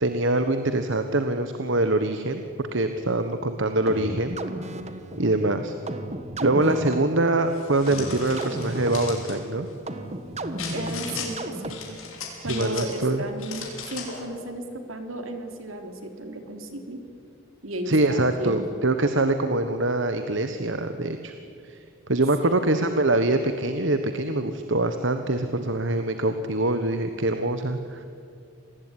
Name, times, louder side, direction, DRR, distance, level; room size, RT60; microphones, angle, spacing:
voice 1, 0.0-2.4 2.7-4.4 5.2-5.7 6.4-9.7 12.5-13.2 17.9-21.3 21.6-21.8 22.1-28.0, right 2 dB, 60° right, 8 dB, 1.3 m, -24 dB
sound 1, 3.9-12.1, right 1 dB, 30° right, 1.4 m, -34 dB
sound 2, 7.5-9.4 10.6-11.3 11.7-13.1 13.4-14.2, left 6 dB, 85° left, 5.6 m, -37 dB
voice 2, 10.7-12.0 12.4-17.0 17.6-18.6 22.4-22.7, right 1 dB, 75° right, 5 dB, 3.4 m, -34 dB
27.0 x 19.5 x 9.8 m, 2.4 s
head